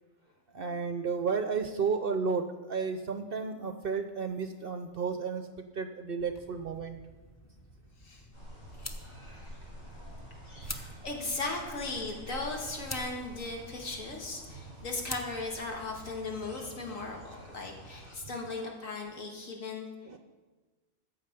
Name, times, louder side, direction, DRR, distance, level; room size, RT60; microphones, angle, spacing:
voice 1, 0.5-5.5 5.8-7.0 20.1-20.2, right 5 dB, 55° right, 8 dB, 0.7 m, -32 dB
sound 1, 6.2-16.6, left 1 dB, 15° left, 0.7 m, -48 dB
sound 2, 8.3-18.2, equal, 55° left, 3.7 m, -48 dB
voice 2, 10.5-19.9, left 3 dB, 70° left, 1 dB, 2.1 m, -37 dB
14.0 x 7.6 x 5.2 m, 1.3 s
omnidirectional pair, 1.4 m